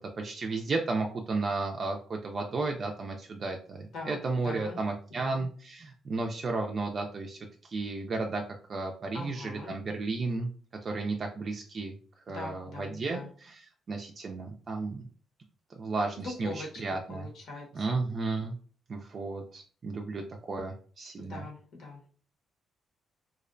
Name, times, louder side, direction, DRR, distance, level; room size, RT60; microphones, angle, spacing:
voice 1, 0.2-8.4 8.7-10.5 10.8-11.9 12.3-15.1 15.8-17.3 17.7-18.6 18.9-21.4, right 3 dB, 45° right, 2 dB, 0.3 m, -33 dB
voice 2, 4.4-4.8 5.2-5.4 9.1-9.8 12.3-13.3 16.2-18.0 21.2-22.1, left 3 dB, 70° left, -1 dB, 1.0 m, -42 dB
2.5 x 2.1 x 2.5 m, 0.43 s
cardioid pair, 95°, 0 cm